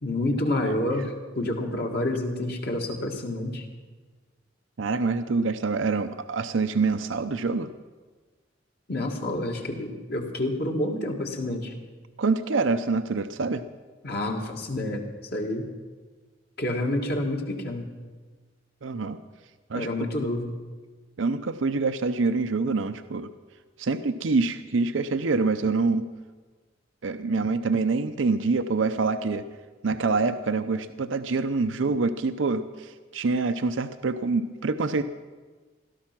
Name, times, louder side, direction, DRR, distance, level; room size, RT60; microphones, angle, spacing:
voice 1, 0.0-3.7 8.9-11.7 14.0-15.0 15.3-15.7 16.6-17.9 19.7-20.5, left 1 dB, 55° left, 2 dB, 2.1 m, -28 dB
voice 2, 4.8-7.7 12.2-13.6 18.8-19.2 19.7-19.9 21.2-23.3 23.8-26.1 27.0-29.4 29.8-35.0, right 4 dB, 90° right, 10 dB, 0.6 m, -26 dB
16.5 x 13.0 x 6.0 m, 1.4 s
head